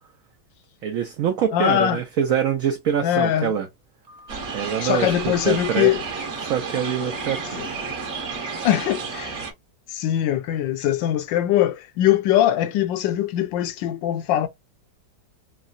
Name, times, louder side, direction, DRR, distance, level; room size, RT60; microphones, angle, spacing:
voice 1, 0.8-3.7 4.5-5.9 6.4-7.6, right 8 dB, 80° right, 0.7 m, -24 dB
voice 2, 1.5-2.0 3.0-3.5 4.8-6.0 7.6-7.7 8.6-9.3 9.9-14.5, left 12 dB, 75° left, 1.2 m, -22 dB
Telephone, 4.0-7.0 7.5-7.8 8.2-8.6, left 1 dB, 25° right, 0.7 m, -48 dB
sound 1, 4.3-9.5, right 4 dB, 45° right, 1.1 m, -31 dB
4.6 x 2.1 x 2.4 m
omnidirectional pair, 2.1 m